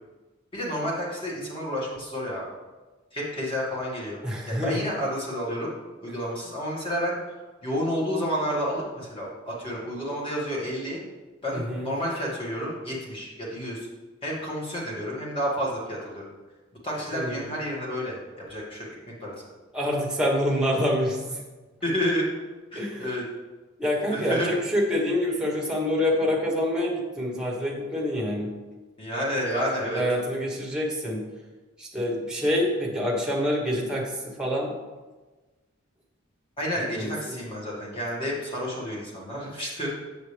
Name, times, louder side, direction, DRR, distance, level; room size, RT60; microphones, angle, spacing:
voice 1, 0.5-2.5 3.1-4.2 4.5-5.7 6.0-7.2 7.6-11.0 11.4-13.8 14.2-16.3 16.8-18.2 18.5-18.9 19.2-19.3 21.8-22.3 22.7-23.2 24.1-24.5 29.0-30.0 36.6-39.9, equal, 25° left, -4 dB, 2.0 m, -30 dB
voice 2, 4.2-4.8 11.5-11.9 17.1-17.5 19.7-21.4 22.7-23.1 23.8-28.5 29.8-31.2 31.8-34.7 36.9-37.4, left 1 dB, 5° right, -2 dB, 1.2 m, -26 dB
7.0 x 6.5 x 3.4 m, 1.2 s
head